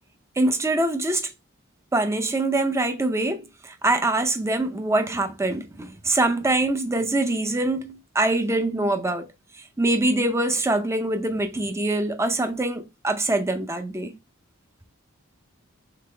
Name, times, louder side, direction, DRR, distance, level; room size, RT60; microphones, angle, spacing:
voice 1, 0.4-1.3 1.9-9.3 9.8-14.2, right 2 dB, 15° right, 0.5 m, -24 dB
4.0 x 3.8 x 3.2 m
head